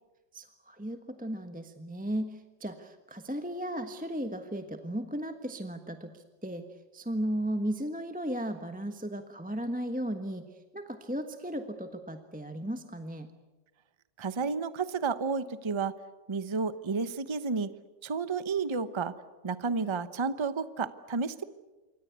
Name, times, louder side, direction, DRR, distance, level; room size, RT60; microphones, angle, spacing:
voice 1, 0.3-6.7 6.9-13.3, right 1 dB, 5° right, 7 dB, 1.1 m, -35 dB
voice 2, 14.2-15.9 16.3-17.7 18.0-19.1 19.4-21.4, right 4 dB, 25° right, 13 dB, 0.7 m, -31 dB
27.5 x 24.0 x 8.3 m, 1.2 s
omnidirectional pair, 1.9 m